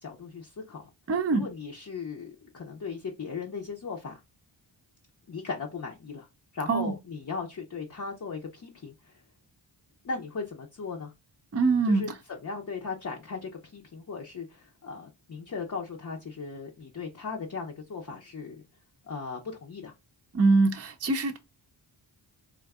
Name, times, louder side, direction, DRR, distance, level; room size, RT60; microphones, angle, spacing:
voice 1, 0.0-0.9 1.3-4.2 5.3-6.3 6.5-9.2 10.0-11.1 11.8-18.6 19.0-19.9, left 4 dB, 40° left, 0.7 m, -37 dB
voice 2, 1.1-1.5 6.7-6.9 11.5-12.1 20.3-21.4, right 3 dB, 30° right, 0.5 m, -23 dB
3.5 x 2.5 x 2.3 m
cardioid pair, 55°, 48 cm